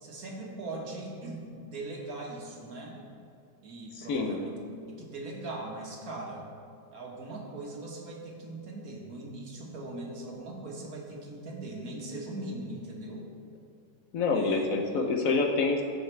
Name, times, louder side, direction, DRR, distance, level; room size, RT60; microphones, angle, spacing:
voice 1, 0.0-3.0 3.6-4.6 4.9-6.5 6.9-13.2 14.3-14.7, right 2 dB, 65° right, -1 dB, 1.8 m, -40 dB
voice 2, 4.0-4.4 14.1-15.9, left 4 dB, 65° left, 3 dB, 1.1 m, -27 dB
16.0 x 5.7 x 3.3 m, 2.5 s
omnidirectional pair, 1.7 m